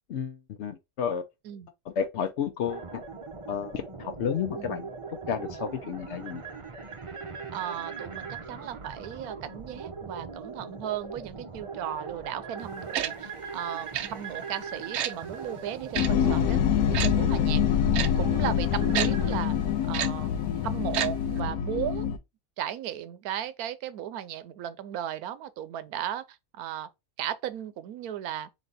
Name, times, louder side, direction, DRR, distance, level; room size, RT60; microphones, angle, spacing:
voice 1, 0.1-1.2 2.0-3.0 3.5-4.9 5.3-6.4, left 7 dB, 60° left, 0.8 m, -31 dB
sound 1, 2.7-19.4, right 5 dB, 30° right, 0.6 m, -40 dB
voice 2, 7.5-16.6 16.9-17.6 18.1-19.6 19.9-20.3 20.6-22.1 22.6-26.2 26.5-26.9 27.2-28.5, right 11 dB, 85° right, 1.1 m, -36 dB
Tick-tock, 12.9-13.1 13.9-14.1 14.9-15.1 15.9-16.1 16.9-17.1 17.9-18.1 18.9-19.1 19.9-20.1 20.9-21.1 21.4-21.5, right 10 dB, 65° right, 0.7 m, -28 dB
sound 2, 16.0-22.2, left 9 dB, 85° left, 1.1 m, -25 dB
4.0 x 3.2 x 3.9 m
omnidirectional pair, 1.5 m